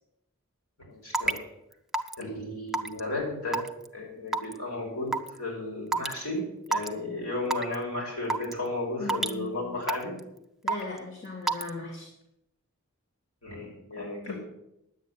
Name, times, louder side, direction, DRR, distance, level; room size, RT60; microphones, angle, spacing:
voice 1, 0.8-1.4 2.2-3.6 3.9-5.1 5.4-6.4 6.7-10.2 13.4-14.4, left 2 dB, 85° left, -3 dB, 5.8 m, -34 dB
Raindrop / Water tap faucet / Drip, 1.1-1.4 1.9-2.2 2.7-3.0 3.5-3.9 4.3-4.5 5.1-5.3 5.9-6.1 6.7-6.9 7.5-7.7 8.3-8.5 9.1-9.3 9.9-10.2 10.7-11.0 11.5-11.7, right 3 dB, ahead, 0.5 m, -27 dB
voice 2, 9.0-9.8 10.6-12.1 14.2-14.3, left 3 dB, 55° left, 1 dB, 2.2 m, -38 dB
10.0 x 8.4 x 8.4 m, 0.84 s
head